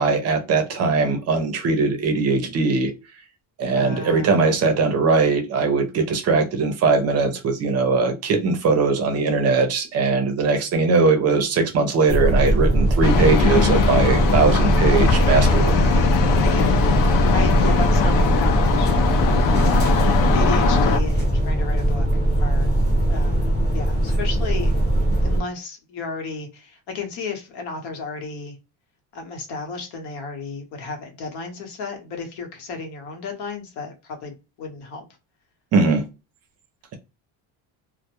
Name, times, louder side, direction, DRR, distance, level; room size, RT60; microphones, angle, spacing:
voice 1, 0.0-2.9 3.6-15.8 35.7-36.1, right 4 dB, 40° right, 0.5 m, -20 dB
voice 2, 3.7-4.3 16.4-16.9 17.3-19.0 19.7-20.1 20.3-22.7 23.1-24.7 25.2-28.6 29.1-35.1, left 4 dB, 70° left, 0.9 m, -33 dB
sound 1, 12.1-25.4, right 1 dB, 25° left, 0.8 m, -20 dB
sound 2, 13.0-21.0, left 7 dB, 55° left, 0.5 m, -21 dB
2.2 x 2.0 x 2.8 m
cardioid pair, 175°, 41 cm